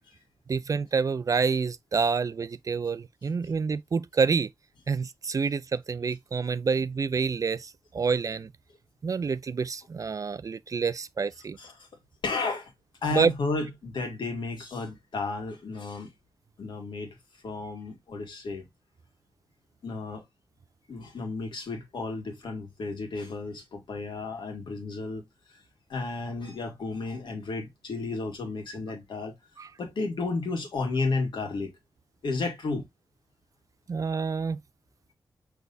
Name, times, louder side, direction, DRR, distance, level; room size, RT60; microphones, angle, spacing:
voice 1, 0.5-4.5 4.9-8.5 9.0-11.6 13.1-13.3 29.6-29.7 33.9-34.6, right 5 dB, 45° right, 0.4 m, -27 dB
voice 2, 12.2-12.7 13.0-16.1 16.6-17.2 17.4-18.7 19.8-20.2 20.9-25.2 25.9-29.3 29.8-31.7 32.2-32.9, left 3 dB, 80° left, 1.9 m, -32 dB
6.1 x 3.4 x 2.6 m
wide cardioid pair, 100°, 8 cm